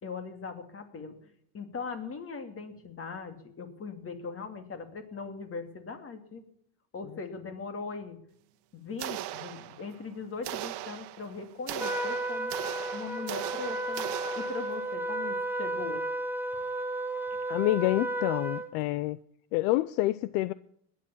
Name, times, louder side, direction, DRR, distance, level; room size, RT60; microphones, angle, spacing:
voice 1, 0.0-6.4 6.9-8.2 8.7-12.6 12.9-14.1 14.3-16.0, left 4 dB, 30° left, 2.6 m, -40 dB
sound 1, 9.0-10.0 10.4-14.9, right 16 dB, 60° right, 1.4 m, -39 dB
Trumpet, 11.8-18.7, right 1 dB, 5° right, 1.1 m, -33 dB
voice 2, 17.5-19.2 19.5-20.5, left 17 dB, 70° left, 0.7 m, -27 dB
17.5 x 11.5 x 7.2 m
supercardioid pair, 115°, 46 cm